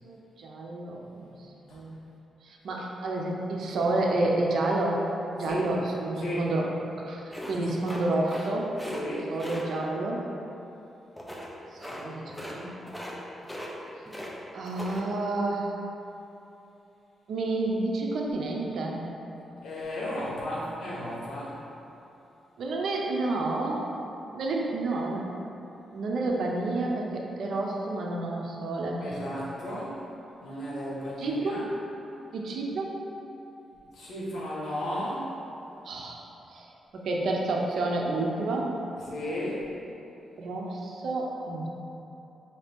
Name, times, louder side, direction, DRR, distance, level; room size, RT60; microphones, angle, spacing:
voice 1, 0.0-2.0 2.4-5.1 5.4-6.7 7.1-8.8 9.3-10.3 11.7-12.9 14.5-15.7 17.3-19.0 22.6-23.9 24.3-25.4 25.9-29.1 31.2-31.7 32.3-33.0 35.8-36.2 36.5-36.7 36.9-38.8 40.4-41.7, right 2 dB, 70° right, -1 dB, 0.5 m, -30 dB
voice 2, 6.1-6.5 7.5-7.9 8.9-9.4 19.5-21.6 29.0-30.0 30.4-31.7 33.9-35.3 39.1-39.7, left 1 dB, 75° left, -7 dB, 1.1 m, -34 dB
sound 1, 7.3-8.5 8.7-9.0 9.4-9.6 11.2-11.5 11.8-12.0 12.3-12.6 12.8-13.2 13.4-14.3 14.6-15.0, equal, 5° left, 0.4 m, -38 dB
4.8 x 2.8 x 3.5 m, 2.9 s
wide cardioid pair, 140°, 0 cm